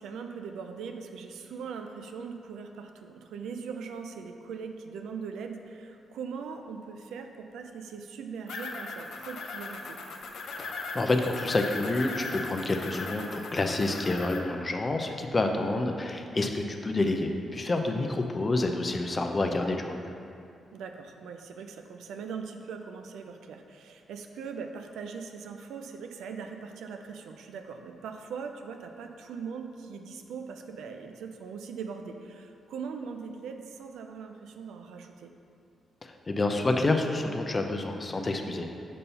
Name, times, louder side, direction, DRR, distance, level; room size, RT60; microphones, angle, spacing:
voice 1, 0.0-10.0 15.5-15.7 20.7-35.3 38.4-38.5, right 5 dB, 85° right, 5 dB, 0.5 m, -40 dB
sound 1, 8.5-14.4, left 3 dB, 75° left, 0.6 m, -38 dB
voice 2, 10.6-20.1 36.0-38.7, left 2 dB, 35° left, 4 dB, 0.6 m, -28 dB
5.4 x 4.2 x 5.5 m, 2.5 s
cardioid pair, 65°, 0 cm